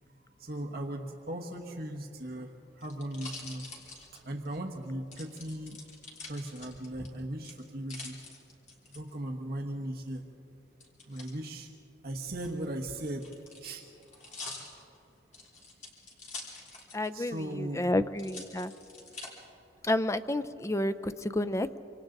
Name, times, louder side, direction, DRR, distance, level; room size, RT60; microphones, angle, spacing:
voice 1, 0.4-5.8 6.2-8.2 8.9-10.2 11.1-11.7 12.0-13.3 13.6-13.8 17.1-17.9, right 1 dB, 55° right, 2 dB, 1.3 m, -38 dB
sound 1, 2.1-4.6 5.1-7.1 7.4-9.0 10.8-11.3 12.3-17.2 17.5-17.6 18.2-19.3 19.9-20.5, left 3 dB, 40° left, 3.3 m, -46 dB
voice 2, 16.9-18.7 19.8-21.8, left 1 dB, 15° left, 12 dB, 0.5 m, -30 dB
26.5 x 26.0 x 3.9 m, 2.8 s
head